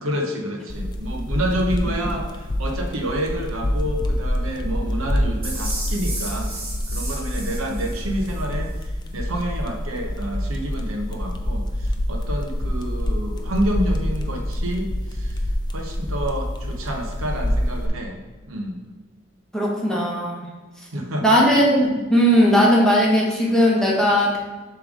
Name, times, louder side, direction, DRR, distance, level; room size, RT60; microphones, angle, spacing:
voice 1, 0.0-6.5 6.9-15.4 15.7-18.2 18.5-18.8 20.9-21.4, equal, 90° right, 2 dB, 1.0 m, -28 dB
sound 1, 0.7-17.9, equal, 20° left, 0.5 m, -26 dB
sound 2, 5.4-8.4, right 2 dB, 50° right, 2.2 m, -34 dB
voice 2, 19.5-20.4 21.2-24.4, equal, 5° left, -5 dB, 1.2 m, -18 dB
7.2 x 3.3 x 5.1 m, 1.3 s
head